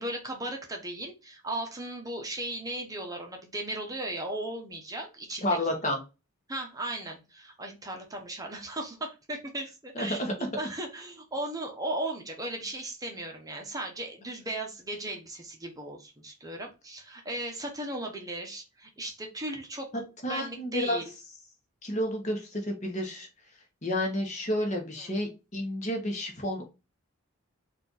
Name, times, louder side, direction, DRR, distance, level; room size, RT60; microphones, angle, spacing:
voice 1, 0.0-5.6 6.5-19.9 20.3-21.0 25.0-25.1, right 1 dB, 15° right, 2 dB, 0.8 m, -36 dB
voice 2, 5.4-6.0 9.9-10.3 20.2-21.0 21.8-23.3 23.8-26.7, left 1 dB, 35° left, 3 dB, 1.1 m, -30 dB
4.4 x 2.5 x 3.9 m, 0.28 s
head